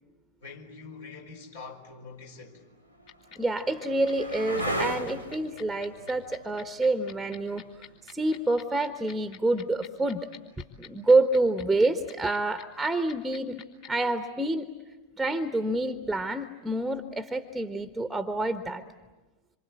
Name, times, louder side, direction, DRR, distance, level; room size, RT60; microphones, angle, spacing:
voice 1, 0.4-2.6, left 4 dB, 60° left, 4.5 m, -44 dB
sound 1, 1.4-1.5 2.3-10.0 12.3-12.8, right 1 dB, 90° left, 2.0 m, -38 dB
sound 2, 3.1-14.1, left 7 dB, 45° left, 3.5 m, -46 dB
voice 2, 3.4-7.6 8.1-10.3 10.8-13.6 13.9-14.7 15.2-18.8, right 2 dB, 5° right, 1.2 m, -27 dB
27.0 x 27.0 x 8.1 m
figure-of-eight pair, 90°, 0 cm